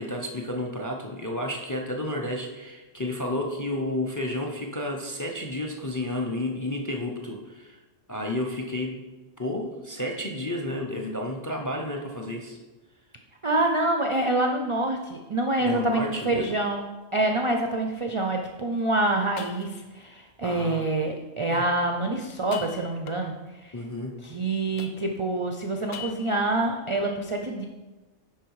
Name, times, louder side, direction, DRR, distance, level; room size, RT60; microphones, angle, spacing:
voice 1, 0.0-7.8 8.1-9.0 9.4-12.6 15.6-16.6 20.4-20.8 21.5-21.6 23.7-24.2, left 1 dB, 20° left, 2 dB, 0.5 m, -31 dB
voice 2, 13.4-16.8 17.1-23.8 24.2-27.7, right 2 dB, 50° right, 3 dB, 0.4 m, -26 dB
sound 1, 15.3-15.4 15.9-16.0 16.7-16.8 18.8-18.9 19.4-20.0 22.3-23.5 24.8-25.3 25.9-26.5, left 8 dB, 80° left, 1.0 m, -42 dB
10.5 x 3.9 x 4.8 m, 1.2 s
omnidirectional pair, 1.3 m